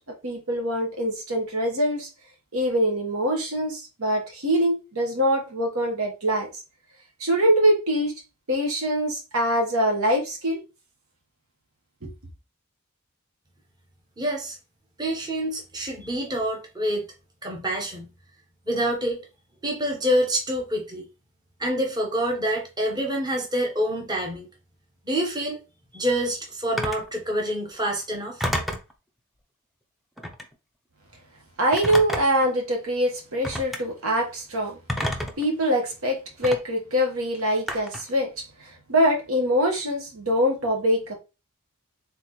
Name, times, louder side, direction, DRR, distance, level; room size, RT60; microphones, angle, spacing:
voice 1, 0.2-2.1 2.5-6.6 7.2-8.1 8.5-10.6 12.0-12.1 31.6-34.8 35.4-38.3 38.9-41.2, equal, 70° right, 1.3 m, -24 dB
voice 2, 14.2-14.6 15.0-17.0 17.4-18.1 18.7-19.2 19.6-21.1 21.6-24.5 25.1-25.6 25.9-28.4, equal, 20° right, 0.9 m, -27 dB
Telephone, 26.8-27.1 28.4-28.9 30.2-30.5 31.7-32.5 33.4-33.8 34.9-35.4 36.4-36.6 37.7-38.1, equal, ahead, 0.5 m, -29 dB
4.3 x 3.5 x 3.0 m
head